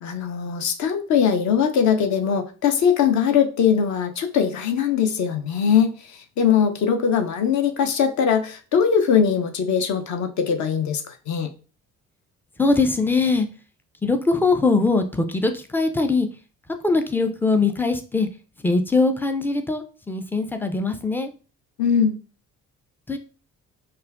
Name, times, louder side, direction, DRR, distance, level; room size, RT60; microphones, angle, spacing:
voice 1, 0.0-11.5 21.8-22.2, left 7 dB, 45° left, 6 dB, 0.7 m, -21 dB
voice 2, 12.6-13.5 14.0-16.3 16.8-18.3 18.6-21.3 23.1-23.2, left 3 dB, 5° left, 6 dB, 0.4 m, -21 dB
5.3 x 2.2 x 2.4 m, 0.37 s
figure-of-eight pair, 45°, 42 cm